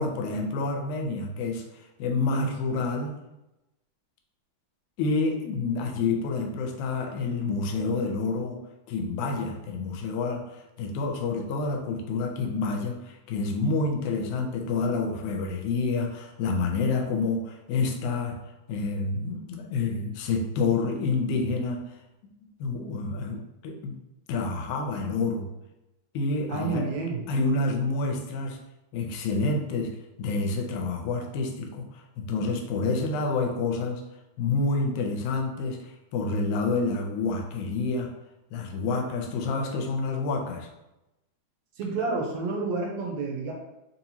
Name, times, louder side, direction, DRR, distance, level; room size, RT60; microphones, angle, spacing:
voice 1, 0.0-1.6 2.0-3.2 5.0-8.6 8.9-10.4 10.8-18.4 18.7-21.8 22.6-24.0 24.3-25.5 26.1-27.0 27.3-28.6 28.9-29.9 30.2-34.0 34.4-38.1 38.5-40.7, left 3 dB, 85° left, 3 dB, 2.0 m, -28 dB
voice 2, 26.5-27.2 41.8-43.5, right 4 dB, 75° right, 0 dB, 1.7 m, -29 dB
4.6 x 2.8 x 2.7 m, 0.94 s
omnidirectional pair, 3.5 m